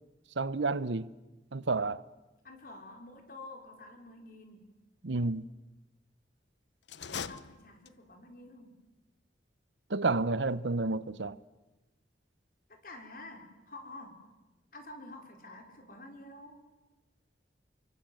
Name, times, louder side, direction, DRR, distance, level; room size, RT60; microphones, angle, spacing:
voice 1, 0.4-1.1 1.5-2.0 5.0-5.4 9.9-11.4, right 3 dB, 80° right, 0.9 m, -30 dB
voice 2, 2.4-4.6 7.0-8.7 12.8-14.2 14.7-16.6, left 2 dB, 50° left, 4.8 m, -49 dB
sound 1, 6.8-8.2, left 6 dB, 75° left, 0.9 m, -41 dB
29.0 x 24.0 x 7.8 m
head